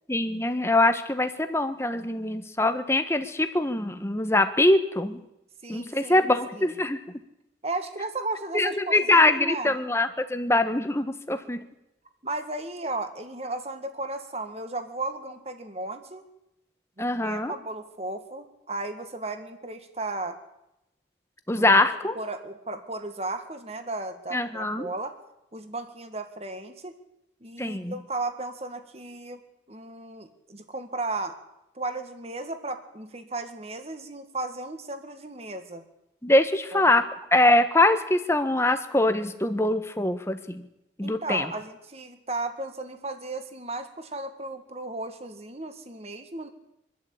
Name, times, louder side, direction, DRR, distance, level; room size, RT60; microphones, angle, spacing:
voice 1, 0.1-5.2 5.7-7.0 8.5-11.6 17.0-17.5 21.5-22.2 24.3-24.9 27.6-28.0 36.2-37.0 37.3-40.6 41.0-41.5, left 2 dB, 15° left, 8 dB, 1.3 m, -23 dB
voice 2, 5.6-6.8 7.6-9.8 12.2-16.2 17.0-20.4 21.6-21.8 22.2-25.2 25.5-26.9 27.4-29.4 29.7-31.4 31.8-35.8 36.7-36.9 41.0-46.5, right 2 dB, 35° right, 8 dB, 1.9 m, -35 dB
25.5 x 12.0 x 8.7 m, 0.88 s
head